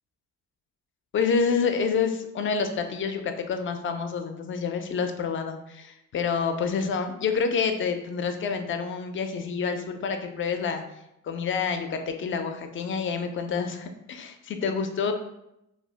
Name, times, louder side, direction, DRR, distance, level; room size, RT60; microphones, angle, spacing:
voice 1, 1.1-10.8 11.2-15.1, left 5 dB, 40° left, 6 dB, 0.4 m, -28 dB
2.4 x 2.0 x 3.4 m, 0.85 s
cardioid pair, 90°, 30 cm